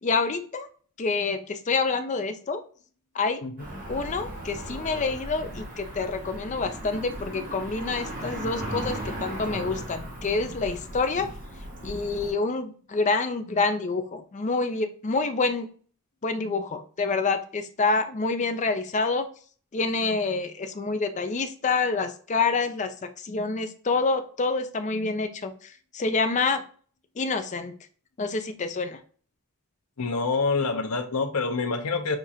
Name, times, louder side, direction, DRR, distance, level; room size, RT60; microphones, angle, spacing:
voice 1, 0.0-0.7 1.0-2.6 3.1-3.4 3.9-11.3 11.8-15.7 16.2-19.3 19.7-25.5 25.9-26.6 27.2-27.7 28.2-29.0, left 4 dB, 35° left, 8 dB, 0.4 m, -27 dB
Cricket / Motor vehicle (road), 3.6-12.3, right 1 dB, 40° right, 1.4 m, -37 dB
voice 2, 30.0-32.2, left 4 dB, 85° left, 6 dB, 0.8 m, -26 dB
6.4 x 2.5 x 2.7 m, 0.44 s
head